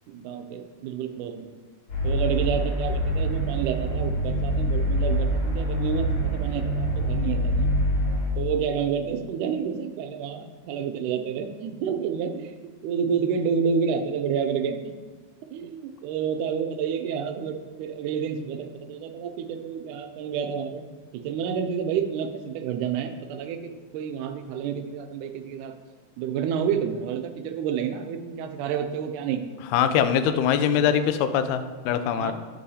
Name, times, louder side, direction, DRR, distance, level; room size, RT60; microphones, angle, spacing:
voice 1, 0.1-1.5 2.0-7.7 8.4-12.5 12.8-15.0 15.5-20.8 21.1-23.6 23.9-25.7 26.2-29.4 32.2-32.3, right 7 dB, 80° right, 7 dB, 1.9 m, -29 dB
sound 1, 1.9-8.3, right 1 dB, 40° left, 3.2 m, -25 dB
voice 2, 29.7-32.3, left 8 dB, 80° left, 10 dB, 1.7 m, -22 dB
8.2 x 7.4 x 2.8 m, 1.4 s
omnidirectional pair, 3.8 m